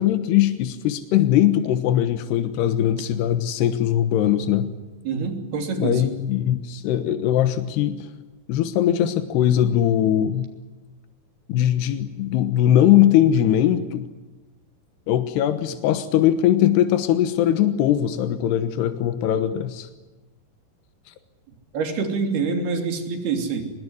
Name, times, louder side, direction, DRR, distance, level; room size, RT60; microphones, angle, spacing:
voice 1, 0.0-4.7 5.8-8.1 8.5-10.5 11.5-14.1 15.1-19.9, left 11 dB, 85° left, 10 dB, 3.3 m, -20 dB
voice 2, 5.1-6.1 21.7-23.6, right 5 dB, 75° right, 5 dB, 5.1 m, -26 dB
24.5 x 21.0 x 9.7 m, 1.2 s
omnidirectional pair, 4.6 m